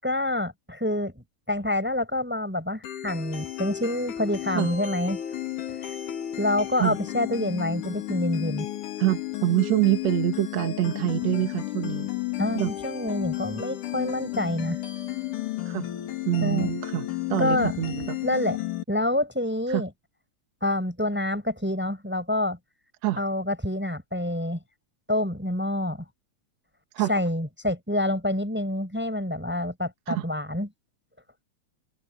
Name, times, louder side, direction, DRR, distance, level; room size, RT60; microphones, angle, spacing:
voice 1, 0.0-5.2 5.8-5.9 6.4-8.7 12.4-14.8 16.4-16.7 17.4-18.6 18.9-19.9 20.6-22.6 23.2-24.6 25.1-26.1 27.1-30.7, left 1 dB, 5° right, 6.8 m, -27 dB
sound 1, 2.8-18.8, left 14 dB, 85° left, 3.3 m, -33 dB
voice 2, 9.0-12.1 12.6-12.7 15.7-15.9 16.3-18.2 19.7-19.8 23.0-23.2 26.9-27.1 30.1-30.2, right 15 dB, 65° right, 2.2 m, -25 dB
open air
omnidirectional pair, 3.5 m